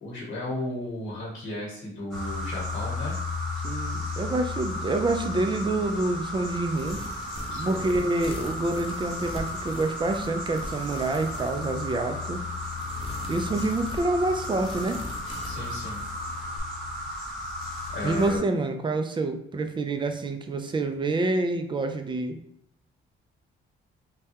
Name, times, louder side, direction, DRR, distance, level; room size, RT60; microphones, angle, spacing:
voice 1, 0.0-3.2 7.5-7.8 13.5-13.7 15.4-16.1 17.9-18.4, left 1 dB, 90° left, -3 dB, 1.1 m, -34 dB
sound 1, 2.1-18.4, left 2 dB, ahead, 1.4 m, -34 dB
voice 2, 3.6-7.0 7.5-12.4 13.3-15.0 18.0-22.4, right 2 dB, 25° right, 6 dB, 0.4 m, -27 dB
sound 2, 6.7-16.6, left 1 dB, 25° left, 0.6 m, -42 dB
3.3 x 2.3 x 2.8 m, 0.69 s
cardioid pair, 90°, 20 cm